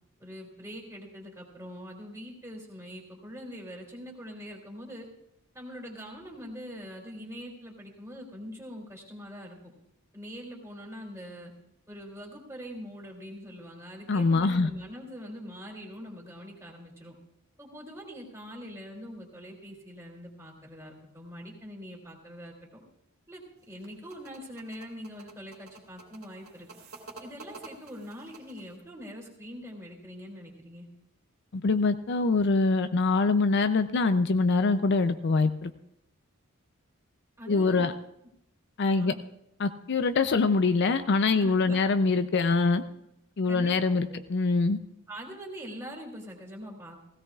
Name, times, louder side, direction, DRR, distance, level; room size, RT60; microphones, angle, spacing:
voice 1, 0.2-5.1 5.5-9.6 10.1-11.5 11.9-17.1 17.6-22.8 23.3-26.7 27.2-30.9 37.4-37.9 38.8-39.2 41.3-41.8 43.5-44.2 45.1-47.0, equal, 15° right, -1 dB, 2.7 m, -43 dB
voice 2, 14.1-14.7 31.5-35.7 37.5-37.9 38.8-39.1 39.6-42.8 43.4-44.8, left 3 dB, 55° left, 10 dB, 0.5 m, -24 dB
sound 1, 23.6-28.8, right 3 dB, 80° right, 2.8 m, -50 dB
16.5 x 16.5 x 2.4 m, 0.81 s
head